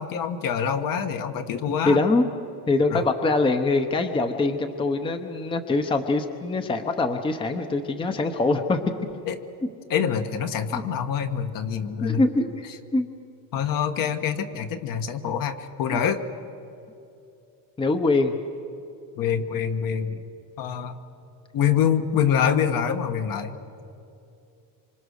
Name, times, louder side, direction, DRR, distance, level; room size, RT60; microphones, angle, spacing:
voice 1, 0.0-2.0 2.9-3.0 9.3-9.4 9.9-12.2 13.5-16.2 19.2-20.2 20.6-21.0 21.5-23.5, left 8 dB, 50° left, 7 dB, 1.6 m, -25 dB
voice 2, 1.9-2.2 2.7-8.8 10.7-10.8 12.0-12.6 12.9-13.1 15.9-16.0 17.8-18.3, left 3 dB, 10° left, 7 dB, 0.9 m, -23 dB
26.5 x 26.0 x 6.5 m, 2.7 s
cardioid pair, 165°, 42 cm